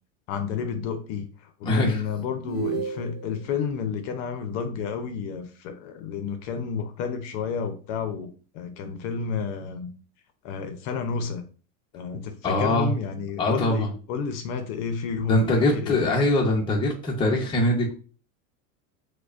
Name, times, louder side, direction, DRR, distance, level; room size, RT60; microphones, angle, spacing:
voice 1, 0.3-9.9 10.4-11.4 11.9-16.1, left 6 dB, 55° left, 8 dB, 0.6 m, -31 dB
voice 2, 1.6-2.1 12.4-12.9 13.4-13.9 15.3-17.9, left 1 dB, 10° left, -1 dB, 0.6 m, -23 dB
sound 1, 2.5-3.5, right 7 dB, 50° right, 1.0 m, -32 dB
4.8 x 2.1 x 2.4 m, 0.38 s
supercardioid pair, 140°, 41 cm